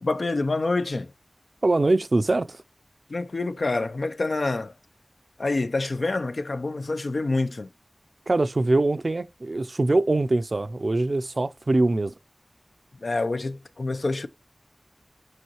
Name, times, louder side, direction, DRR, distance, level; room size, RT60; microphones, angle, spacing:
voice 1, 0.0-1.1 3.1-4.7 5.4-7.7 13.0-14.3, left 3 dB, 85° left, 0.6 m, -27 dB
voice 2, 1.6-2.6 8.3-12.1, right 2 dB, 70° right, 0.5 m, -23 dB
6.3 x 5.4 x 3.1 m
wide cardioid pair, 50°, 0 cm